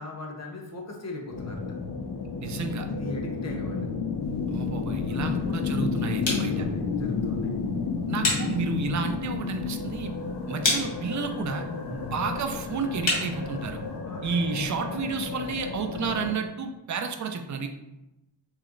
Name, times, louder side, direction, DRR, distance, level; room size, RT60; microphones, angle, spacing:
voice 1, 0.0-1.6 2.8-3.9 5.1-5.4 6.2-7.5 8.2-8.5 11.8-12.2 13.9-14.3, left 2 dB, 35° left, 0 dB, 0.9 m, -39 dB
sound 1, 1.3-16.3, left 5 dB, 65° left, 0.6 m, -31 dB
voice 2, 2.4-2.9 4.5-6.6 8.1-10.1 10.5-11.7 12.1-13.8 14.2-17.7, right 5 dB, 45° right, 6 dB, 0.5 m, -31 dB
sound 2, 4.2-14.0, left 2 dB, 90° left, 1.2 m, -34 dB
3.2 x 3.0 x 3.8 m, 0.93 s
wide cardioid pair, 110°, 43 cm